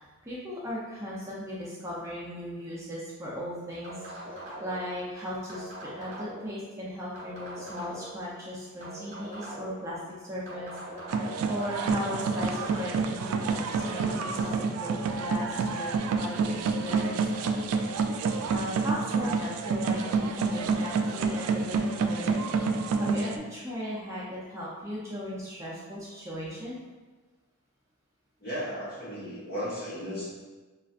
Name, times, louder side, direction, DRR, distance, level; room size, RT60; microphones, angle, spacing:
voice 1, 0.0-10.8 11.4-17.3 18.5-26.8, equal, 15° right, -7 dB, 0.5 m, -37 dB
sound 1, 3.8-4.9 5.5-6.5 7.1-8.2 8.8-9.8 10.5-11.5 12.1-13.2 13.8-14.6, right 1 dB, 30° right, 0.9 m, -42 dB
sound 2, 11.1-23.4, right 4 dB, 80° right, 0.3 m, -28 dB
voice 2, 28.4-30.4, equal, 45° left, -7 dB, 1.1 m, -35 dB
5.3 x 2.4 x 2.4 m, 1.3 s
head